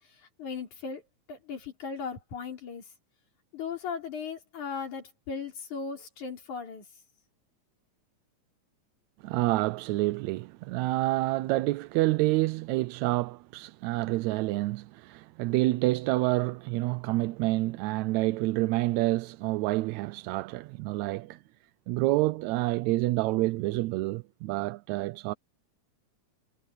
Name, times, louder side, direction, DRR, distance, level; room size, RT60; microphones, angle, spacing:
voice 1, 0.4-1.0 1.3-2.8 3.5-6.9, left 5 dB, 75° left, 5.3 m, -37 dB
voice 2, 9.2-21.4 21.9-25.3, right 19 dB, 80° right, 1.8 m, -28 dB
omnidirectional pair, 3.4 m